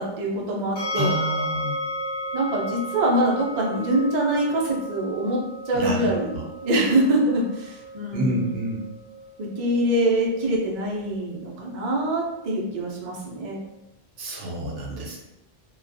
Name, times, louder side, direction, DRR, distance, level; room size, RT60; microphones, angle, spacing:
voice 1, 0.0-1.1 2.3-6.4 6.6-8.5 9.4-13.6, right 1 dB, 50° right, -2 dB, 0.5 m, -24 dB
sound 1, 0.8-13.7, equal, 70° left, 1.1 m, -35 dB
voice 2, 1.0-1.8 5.7-6.5 8.1-8.8 14.2-15.2, right 1 dB, 70° right, -2 dB, 0.9 m, -28 dB
2.3 x 2.2 x 2.5 m, 0.85 s
omnidirectional pair, 1.1 m